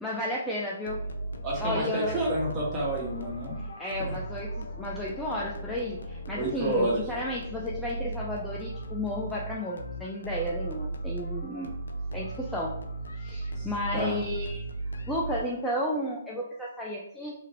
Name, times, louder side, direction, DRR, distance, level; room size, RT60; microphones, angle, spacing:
voice 1, 0.0-1.0 1.6-2.2 3.8-11.8 12.1-12.7 13.2-14.6 15.1-17.3, left 1 dB, 5° left, -5 dB, 0.3 m, -33 dB
sound 1, 0.9-15.8, right 2 dB, 80° left, 0.4 m, -37 dB
voice 2, 1.4-3.6 6.3-7.0 13.5-13.7 13.9-14.2, right 1 dB, 20° right, -5 dB, 1.1 m, -29 dB
2.9 x 2.5 x 2.5 m, 0.79 s
hypercardioid pair, 145°, 0 cm